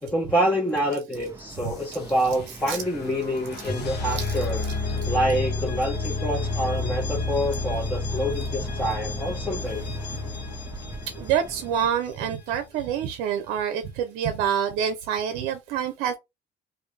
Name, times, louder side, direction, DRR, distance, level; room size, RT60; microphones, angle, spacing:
voice 1, 0.0-4.6 5.0-9.9, equal, 10° left, 1.1 m, -27 dB
Boat Water vehicle, 1.1-11.9, right 2 dB, 15° right, 0.9 m, -41 dB
sound 1, 1.5-12.3, left 3 dB, 60° left, 1.2 m, -31 dB
voice 2, 11.2-16.2, right 8 dB, 80° right, 0.6 m, -27 dB
3.1 x 2.6 x 3.1 m
supercardioid pair, 70°, 20 cm